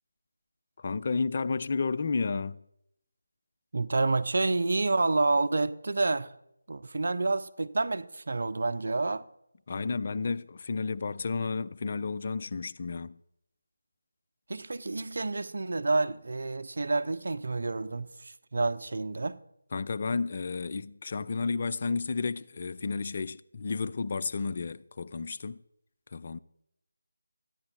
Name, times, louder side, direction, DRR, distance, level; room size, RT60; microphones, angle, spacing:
voice 1, 0.8-2.6 9.7-13.2 19.7-25.6 26.1-26.4, left 4 dB, 40° left, 0.4 m, -32 dB
voice 2, 3.7-6.3 6.7-9.2 14.5-19.4, right 3 dB, 60° right, 0.7 m, -29 dB
14.0 x 10.0 x 4.5 m
figure-of-eight pair, 160°, 0 cm